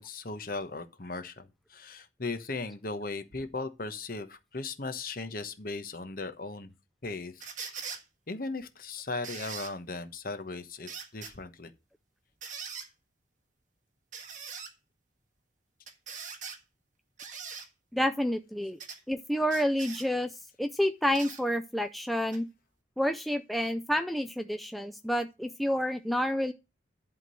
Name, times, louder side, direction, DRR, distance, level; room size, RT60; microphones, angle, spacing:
voice 1, 0.0-6.7 7.0-7.8 8.3-11.7, left 3 dB, 50° left, 1.1 m, -37 dB
sound 1, 7.4-8.0 9.2-9.7 10.9-11.3 12.4-12.9 14.1-14.7 15.9-16.6 17.2-17.7 18.8-19.0 19.5-20.1 21.1-21.4 22.3-22.4, right 6 dB, 40° right, 1.6 m, -41 dB
voice 2, 17.9-18.8 19.1-22.5 23.0-26.5, equal, ahead, 0.4 m, -29 dB
11.0 x 3.8 x 7.6 m
head